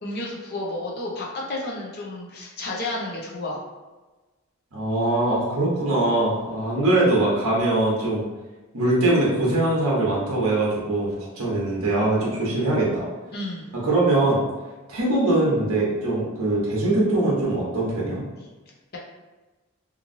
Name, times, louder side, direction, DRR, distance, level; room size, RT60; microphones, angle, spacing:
voice 1, 0.0-3.6 13.3-13.7, left 2 dB, 45° left, -3 dB, 0.6 m, -31 dB
voice 2, 4.7-8.2 8.7-13.1 13.8-14.4 14.9-18.3, right 2 dB, 65° right, -6 dB, 0.9 m, -22 dB
3.0 x 2.6 x 2.6 m, 1.2 s
head